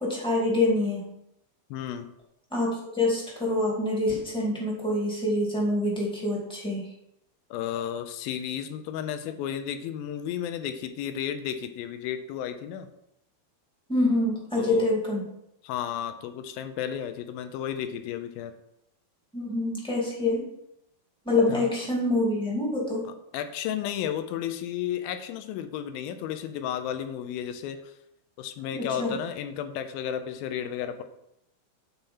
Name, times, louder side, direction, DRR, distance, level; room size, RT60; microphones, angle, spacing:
voice 1, 0.0-1.1 2.5-6.9 13.9-15.3 19.3-20.5 21.2-23.1 28.7-29.1, left 2 dB, 5° left, -4 dB, 0.9 m, -26 dB
voice 2, 1.7-2.1 7.5-12.9 14.6-14.9 15.6-18.5 21.5-21.7 23.3-27.9 28.4-31.0, left 9 dB, 80° left, 8 dB, 2.5 m, -33 dB
9.0 x 4.3 x 5.5 m, 0.80 s
omnidirectional pair, 4.4 m